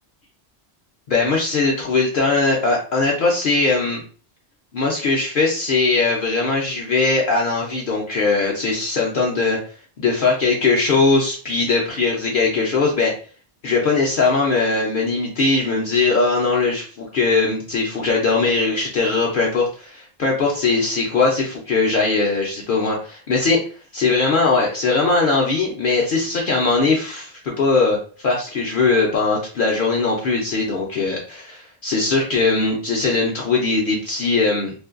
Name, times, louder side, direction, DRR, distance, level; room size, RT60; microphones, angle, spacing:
voice 1, 1.1-4.0 4.7-9.6 10.0-13.1 13.6-23.6 23.9-34.7, left 3 dB, 60° left, -2 dB, 0.6 m, -20 dB
2.5 x 2.2 x 2.4 m, 0.41 s
omnidirectional pair, 1.1 m